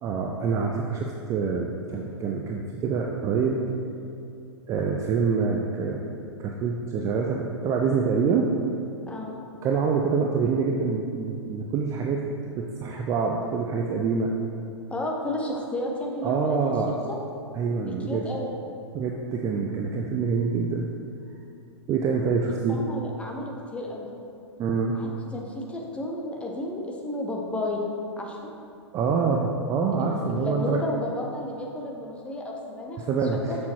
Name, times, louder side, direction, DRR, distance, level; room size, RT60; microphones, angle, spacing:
voice 1, 0.0-3.6 4.7-8.5 9.6-12.2 12.5-14.3 16.2-17.0 17.5-18.3 18.9-20.9 21.9-22.8 24.6-25.0 28.9-30.8 33.0-33.6, right 5 dB, 20° right, 1 dB, 0.4 m, -26 dB
voice 2, 14.9-17.2 17.8-18.5 22.5-24.1 24.9-27.8 28.2-28.5 30.0-33.0 33.5-33.6, left 1 dB, 5° left, -1 dB, 0.9 m, -33 dB
7.0 x 6.4 x 4.4 m, 2.5 s
figure-of-eight pair, 110°, 15 cm